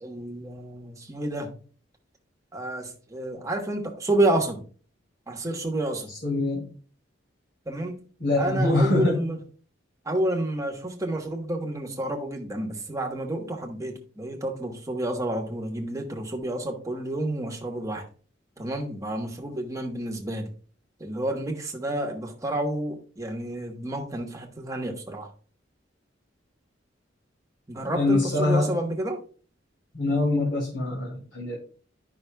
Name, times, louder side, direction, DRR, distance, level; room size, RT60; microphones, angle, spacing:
voice 1, 0.0-1.6 2.5-4.6 5.3-6.1 7.7-8.0 8.4-9.4 10.0-18.1 18.6-20.5 21.0-25.3 27.7-29.2, right 1 dB, 15° right, 1.1 m, -30 dB
voice 2, 6.2-6.7 8.2-9.2 27.9-28.8 29.9-31.6, left 2 dB, 70° left, 2.4 m, -24 dB
11.0 x 5.5 x 2.3 m
head